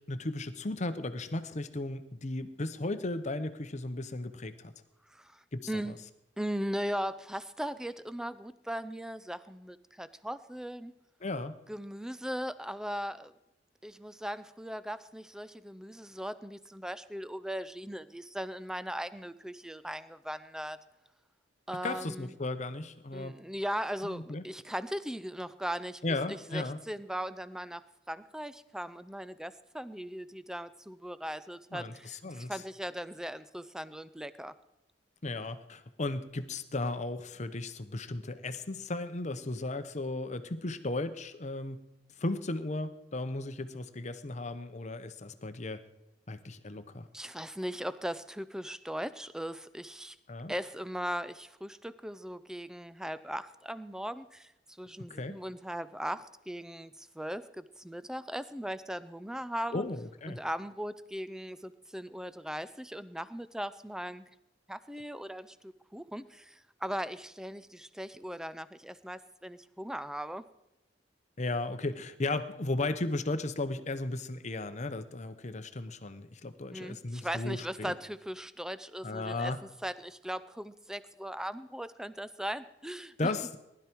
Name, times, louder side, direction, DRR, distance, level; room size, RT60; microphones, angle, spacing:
voice 1, 0.1-4.7 5.5-5.7 11.2-11.6 21.8-23.3 24.0-24.4 26.0-26.8 31.7-32.5 35.2-41.8 42.2-45.8 46.3-47.1 50.3-50.5 55.1-55.4 59.7-60.4 71.4-77.9 79.0-79.6 83.2-83.6, left 2 dB, 40° left, 11 dB, 0.8 m, -35 dB
voice 2, 5.1-6.0 6.4-10.9 11.7-13.3 13.8-20.8 21.7-22.3 23.1-26.0 26.3-34.5 47.1-50.2 50.5-54.5 54.8-59.8 60.3-64.2 64.7-70.4 76.7-79.5 79.8-83.3, equal, 5° right, 14 dB, 0.5 m, -38 dB
19.0 x 12.0 x 4.5 m, 0.90 s
head